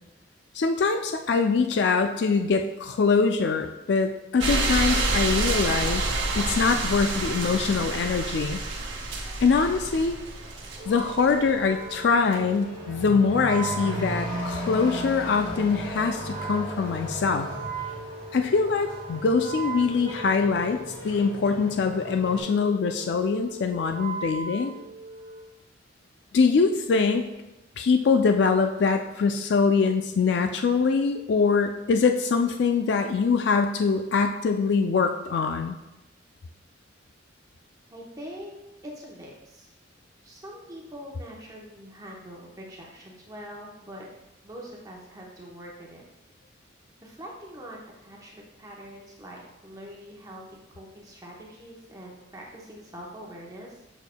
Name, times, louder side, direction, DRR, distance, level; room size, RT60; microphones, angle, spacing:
voice 1, 0.5-8.6 9.4-10.2 10.9-17.5 18.3-24.7 26.3-27.2 27.8-35.8, left 5 dB, 60° left, 6 dB, 0.4 m, -23 dB
sound 1, 4.4-11.3 12.3-12.4, right 3 dB, 70° right, 1.0 m, -28 dB
Truck / Accelerating revving vroom, 8.0-22.4, equal, 30° left, 1.4 m, -38 dB
Wind instrument woodwind instrument, 10.8-25.5, right 4 dB, 50° right, 0.8 m, -39 dB
voice 2, 37.9-39.7 40.2-44.1 44.4-46.0 47.0-53.8, equal, 20° right, -3 dB, 0.9 m, -43 dB
6.9 x 6.3 x 2.2 m, 0.98 s
head